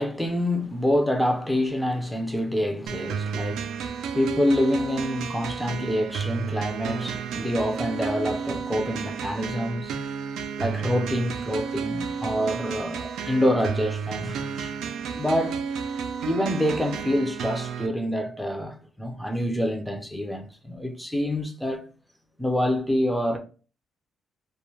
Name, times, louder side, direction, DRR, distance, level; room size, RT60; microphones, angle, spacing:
voice 1, 0.0-3.7 4.1-9.9 10.6-14.7 15.1-15.6 16.3-21.9 22.4-23.4, equal, ahead, 0.4 m, -26 dB
sound 1, 2.9-17.9, right 6 dB, 85° right, 0.3 m, -32 dB
2.2 x 2.1 x 3.1 m
cardioid pair, 115°, 0 cm